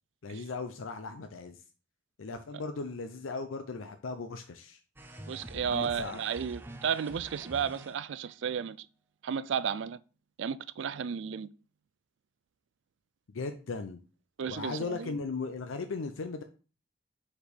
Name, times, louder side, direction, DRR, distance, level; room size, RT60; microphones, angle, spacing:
voice 1, 0.2-1.6 2.2-4.8 5.5-6.2 13.3-14.0 14.5-16.4, left 4 dB, 90° left, 0.5 m, -37 dB
sound 1, 5.0-8.3, right 1 dB, 10° right, 0.5 m, -47 dB
voice 2, 5.3-8.9 9.2-10.0 10.4-11.5 14.4-15.1, right 7 dB, 70° right, 0.4 m, -33 dB
4.7 x 4.4 x 5.1 m
head